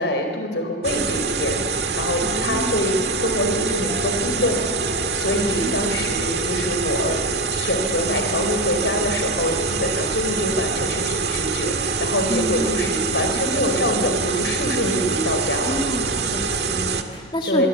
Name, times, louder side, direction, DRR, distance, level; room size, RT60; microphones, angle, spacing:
voice 1, 0.0-1.6 2.0-4.6 4.9-7.2 7.5-15.8 17.5-17.7, left 1 dB, 80° left, 5 dB, 3.8 m, -25 dB
sound 1, 0.8-17.0, right 5 dB, 65° right, 1.8 m, -25 dB
sound 2, 1.1-7.3, left 2 dB, 10° right, 2.8 m, -44 dB
voice 2, 2.2-2.9 5.3-5.7 12.3-12.6 15.6-17.7, left 1 dB, 25° left, 1 dB, 2.1 m, -29 dB
25.5 x 23.5 x 8.3 m, 2.1 s
head